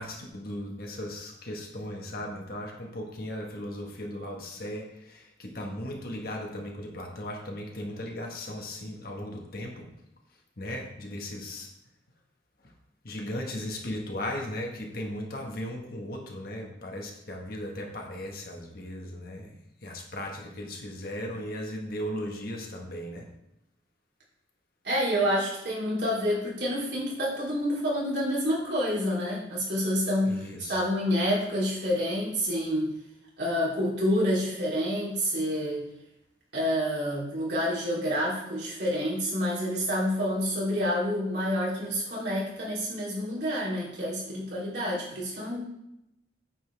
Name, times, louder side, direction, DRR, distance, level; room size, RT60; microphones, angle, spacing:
voice 1, 0.0-9.9 10.6-11.7 13.0-23.3 30.3-30.8, left 1 dB, 55° left, 0 dB, 1.4 m, -37 dB
voice 2, 24.8-32.9 33.4-35.9 36.5-45.6, equal, 65° right, -6 dB, 3.2 m, -28 dB
8.8 x 7.2 x 3.4 m, 0.84 s
head